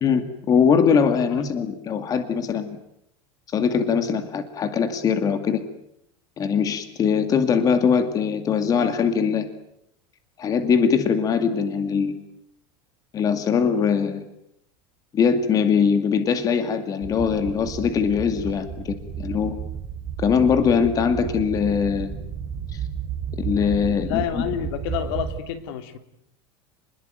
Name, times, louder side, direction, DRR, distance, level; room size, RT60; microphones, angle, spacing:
voice 1, 0.0-2.8 3.5-5.6 6.4-9.5 10.4-12.2 13.1-14.2 15.1-19.6 20.2-22.1 22.7-22.8 23.4-24.4, left 6 dB, 25° left, 9 dB, 2.4 m, -21 dB
sound 1, 17.0-25.4, right 7 dB, 20° right, 4.9 m, -32 dB
voice 2, 24.0-26.0, left 9 dB, 70° left, 10 dB, 3.2 m, -29 dB
29.5 x 21.0 x 9.4 m, 0.78 s
supercardioid pair, 155°, 13 cm